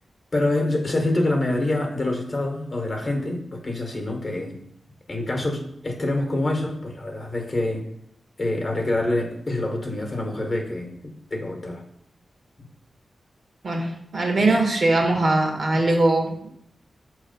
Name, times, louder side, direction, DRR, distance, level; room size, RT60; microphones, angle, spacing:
voice 1, 0.3-4.6 5.1-7.8 8.4-11.8 14.4-14.6, left 2 dB, 35° left, 2 dB, 1.2 m, -26 dB
voice 2, 13.6-16.5, right 2 dB, 55° right, 1 dB, 1.4 m, -21 dB
5.8 x 3.2 x 5.2 m, 0.73 s
wide cardioid pair, 100°, 0 cm